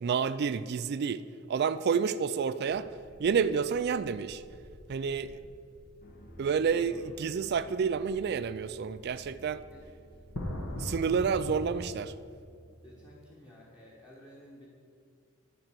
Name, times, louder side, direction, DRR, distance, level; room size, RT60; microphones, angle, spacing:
voice 1, 0.0-2.9 3.2-4.4 4.9-5.4 6.4-9.6 10.7-12.1, right 6 dB, 50° right, 13 dB, 0.3 m, -29 dB
sound 1, 2.7-11.9, left 1 dB, 70° left, 1.3 m, -44 dB
voice 2, 5.0-5.4 6.7-7.1 9.7-9.8 12.8-14.7, equal, 20° left, -4 dB, 1.3 m, -53 dB
sound 2, 6.0-13.2, right 1 dB, 45° left, 1.0 m, -55 dB
11.5 x 4.4 x 7.5 m, 2.4 s
head